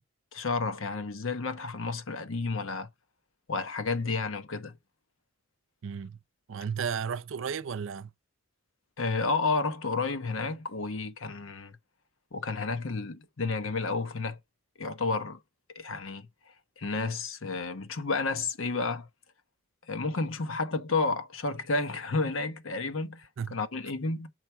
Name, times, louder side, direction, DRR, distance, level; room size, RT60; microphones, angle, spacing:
voice 1, 0.3-2.9 3.5-4.8 9.0-11.8 12.3-14.4 14.8-15.4 15.7-16.3 16.8-19.1 19.9-24.3, left 3 dB, 75° left, 1.0 m, -31 dB
voice 2, 5.8-6.2 6.5-8.1 23.4-23.5, right 6 dB, 70° right, 0.5 m, -33 dB
6.3 x 4.5 x 4.4 m
head